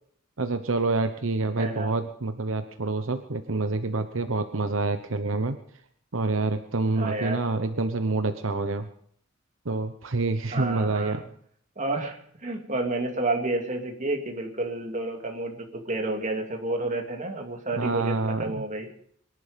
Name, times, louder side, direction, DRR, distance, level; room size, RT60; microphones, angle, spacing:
voice 1, 0.4-5.6 6.1-8.9 9.6-11.2 17.7-18.6, right 3 dB, 75° right, 8 dB, 1.0 m, -27 dB
voice 2, 1.6-1.9 6.9-7.5 10.5-11.2 11.8-18.9, right 2 dB, 40° right, 3 dB, 2.5 m, -30 dB
23.0 x 11.0 x 5.2 m, 0.64 s
head